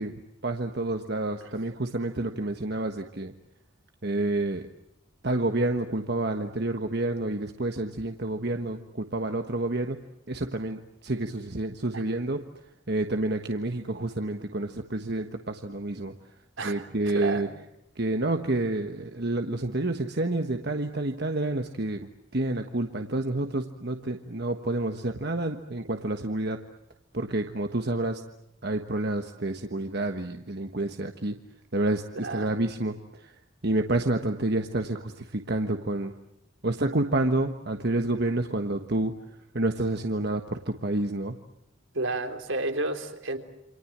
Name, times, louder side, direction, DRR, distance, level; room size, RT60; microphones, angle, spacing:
voice 1, 0.0-3.3 4.0-4.7 5.2-10.0 10.3-12.4 12.9-16.1 16.6-17.5 18.0-22.1 22.3-26.6 27.1-28.2 28.6-31.3 31.7-33.0 33.2-33.3 33.6-36.1 36.6-39.1 39.5-41.3, right 2 dB, 55° right, 5 dB, 1.4 m, -29 dB
voice 2, 16.6-16.9 17.1-17.5 32.2-32.5 41.9-43.4, right 2 dB, 80° right, 5 dB, 3.5 m, -31 dB
29.0 x 26.0 x 7.5 m, 0.83 s
head